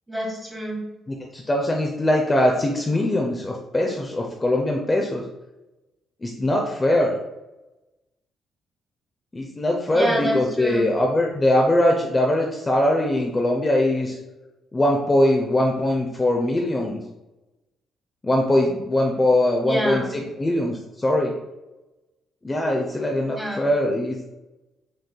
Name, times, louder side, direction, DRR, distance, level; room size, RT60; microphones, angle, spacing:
voice 1, 0.1-0.8 9.9-10.9 19.6-20.1 23.3-23.6, equal, 10° right, -1 dB, 1.5 m, -27 dB
voice 2, 1.1-5.2 6.2-7.2 9.3-14.2 14.7-17.0 18.2-21.3 22.4-24.3, left 1 dB, 20° left, 0 dB, 0.5 m, -21 dB
6.2 x 2.6 x 2.2 m, 0.99 s
cardioid pair, 90°, 0 cm